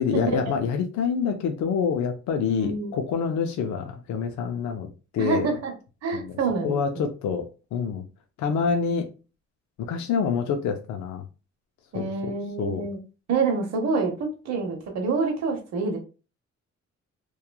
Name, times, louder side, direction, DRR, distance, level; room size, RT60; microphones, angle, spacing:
voice 1, 0.0-5.5 6.1-6.3 6.6-8.0 8.4-9.1 9.8-11.2 11.9-12.3 12.6-12.9, left 6 dB, 75° left, 4 dB, 0.5 m, -27 dB
voice 2, 2.4-2.9 5.2-5.7 6.0-7.1 11.9-13.0 13.3-16.0, right 4 dB, 65° right, 1 dB, 0.8 m, -27 dB
3.0 x 2.2 x 2.2 m, 0.32 s
cardioid pair, 160°, 29 cm